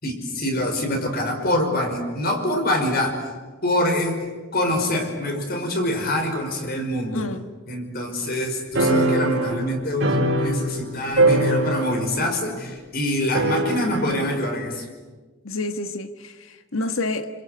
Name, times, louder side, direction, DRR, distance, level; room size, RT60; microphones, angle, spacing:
voice 1, 0.0-3.2 3.6-4.2 4.5-7.3 7.7-14.9, left 1 dB, 45° left, 5.4 m, -25 dB
voice 2, 7.1-7.4 15.4-17.3, left 2 dB, 80° left, 1.7 m, -28 dB
sound 1, 8.8-10.9 11.1-12.2 12.4-12.5 13.3-14.1, right 2 dB, 65° right, 5.4 m, -21 dB
28.5 x 26.5 x 8.0 m
head